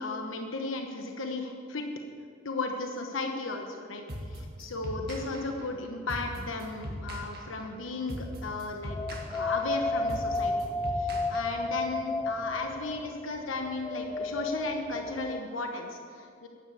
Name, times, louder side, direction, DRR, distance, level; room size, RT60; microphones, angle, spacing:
voice 1, 0.0-1.9 2.4-9.0 9.3-10.5 11.0-16.5, left 3 dB, 90° left, 3 dB, 1.1 m, -35 dB
sound 1, 4.1-11.9, equal, 55° right, 1.8 m, -40 dB
sound 2, 8.9-15.4, left 2 dB, 15° left, 0.3 m, -32 dB
11.5 x 10.5 x 7.1 m, 2.2 s
head